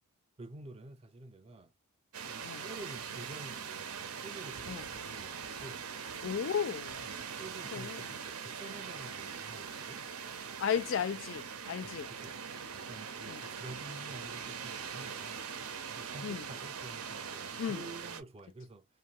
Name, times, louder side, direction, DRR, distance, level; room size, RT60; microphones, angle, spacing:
voice 1, 0.4-1.7 2.2-5.9 7.0-10.0 11.8-12.4 12.7-15.5 16.0-18.9, right 2 dB, 25° right, 0.4 m, -49 dB
sound 1, 2.1-18.2, right 6 dB, 85° right, 0.6 m, -42 dB
voice 2, 6.2-7.0 7.7-8.0 10.6-12.1 13.3-13.4 16.2-16.4 17.6-17.8, left 7 dB, 60° left, 0.3 m, -34 dB
2.6 x 2.2 x 2.9 m
head